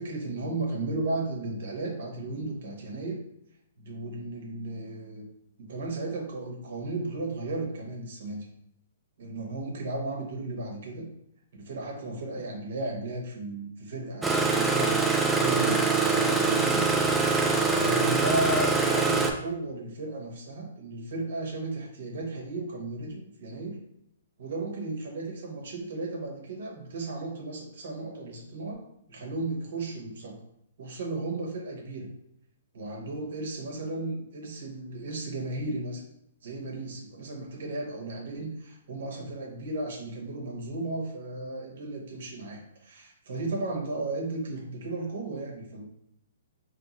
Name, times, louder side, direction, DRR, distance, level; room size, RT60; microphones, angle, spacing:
voice 1, 0.0-3.2 3.8-5.2 5.6-8.5 9.2-11.1 11.6-15.1 15.4-16.8 17.6-23.8 24.4-28.8 29.1-30.4 30.8-32.1 32.7-36.0 36.4-45.9, right 2 dB, 65° right, 0 dB, 1.1 m, -34 dB
Engine starting, 14.2-19.3, right 4 dB, 5° right, 0.4 m, -24 dB
3.9 x 3.2 x 3.0 m, 0.78 s
hypercardioid pair, 140°, 0 cm